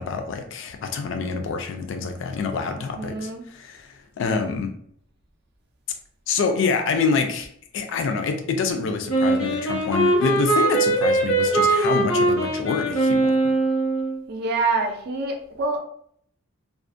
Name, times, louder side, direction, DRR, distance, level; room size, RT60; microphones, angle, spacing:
voice 1, 0.0-4.7 6.3-7.5 7.7-13.3, left 5 dB, 60° left, 5 dB, 0.3 m, -26 dB
voice 2, 2.8-3.4 14.3-15.8, right 3 dB, 50° right, 3 dB, 0.4 m, -26 dB
Wind instrument woodwind instrument, 9.1-14.2, right 2 dB, 85° left, 0.9 m, -21 dB
2.4 x 2.0 x 2.5 m, 0.63 s
head